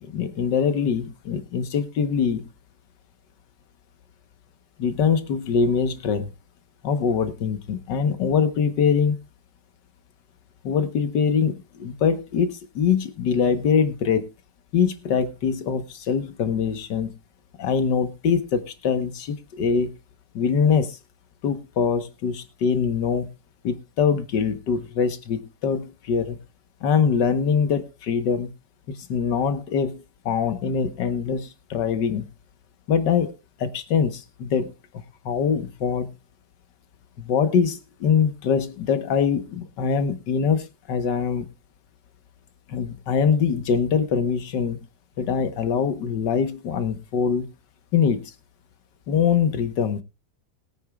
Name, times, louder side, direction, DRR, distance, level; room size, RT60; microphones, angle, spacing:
voice 1, 0.0-2.5 4.8-6.3 6.8-9.2 10.6-14.3 14.7-17.1 17.6-19.9 20.3-21.0 21.4-23.3 23.6-26.4 26.8-28.5 28.9-32.3 32.9-33.3 33.6-34.7 35.3-36.1 37.2-41.5 42.7-44.8 45.2-47.5 47.9-48.3 49.1-50.0, left 6 dB, 75° left, 10 dB, 1.8 m, -23 dB
21.5 x 9.1 x 2.3 m, 0.26 s
omnidirectional pair, 1.9 m